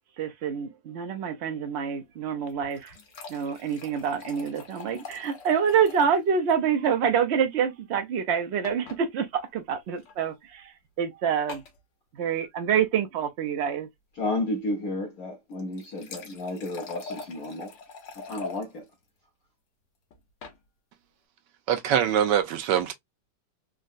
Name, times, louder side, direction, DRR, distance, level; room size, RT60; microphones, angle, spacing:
voice 1, 0.2-2.9 3.3-10.7 11.0-11.6 12.2-13.9, right 7 dB, 55° right, 0.7 m, -26 dB
sound 1, 2.5-6.2 6.5-6.6 6.8-6.9 8.6-9.0 10.0-10.1 11.5-11.8 15.5-18.6 20.1-20.6, left 4 dB, 80° left, 1.6 m, -43 dB
voice 2, 14.2-17.7 18.1-18.9, left 2 dB, 60° left, 1.3 m, -32 dB
voice 3, 21.7-22.9, right 9 dB, 80° right, 1.3 m, -23 dB
3.8 x 2.2 x 2.4 m
omnidirectional pair, 1.9 m